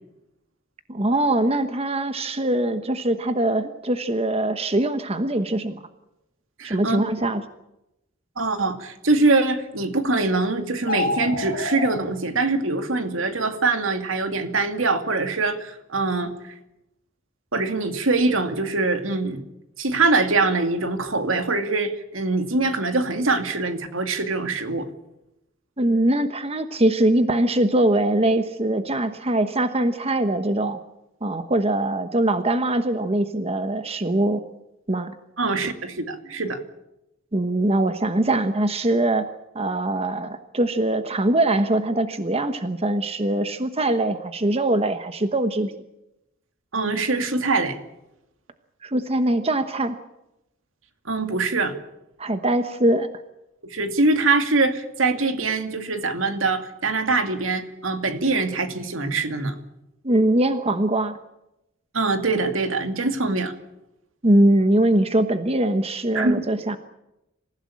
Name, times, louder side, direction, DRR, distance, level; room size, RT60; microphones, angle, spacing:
voice 1, 0.9-5.8 6.6-7.4 25.8-30.8 31.2-34.4 34.9-35.1 37.3-39.3 39.5-45.7 48.8-49.9 52.2-53.1 60.0-61.2 64.2-66.8, right 1 dB, 30° right, 9 dB, 1.1 m, -22 dB
voice 2, 6.6-7.0 8.4-16.5 17.5-19.4 19.8-24.9 35.4-36.6 46.7-47.8 51.1-51.7 53.6-59.5 61.9-63.5 66.1-66.4, right 3 dB, 80° right, 7 dB, 2.5 m, -23 dB
sound 1, 10.8-12.0, left 2 dB, 50° left, 5.4 m, -27 dB
26.0 x 16.0 x 8.6 m, 0.88 s
head